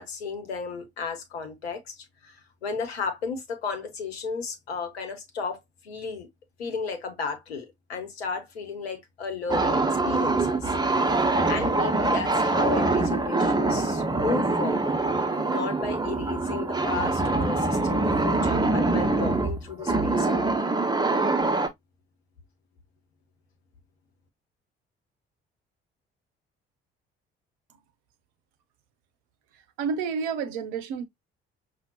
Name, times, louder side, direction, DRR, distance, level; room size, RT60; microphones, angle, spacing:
voice 1, 0.0-6.3 6.6-10.7 11.5-14.9 15.5-20.8, left 5 dB, 80° left, 0.9 m, -34 dB
sound 1, 9.5-21.7, right 3 dB, 15° right, 0.9 m, -24 dB
voice 2, 29.8-31.0, right 6 dB, 65° right, 0.7 m, -29 dB
5.7 x 2.4 x 2.8 m
figure-of-eight pair, 45°, 31 cm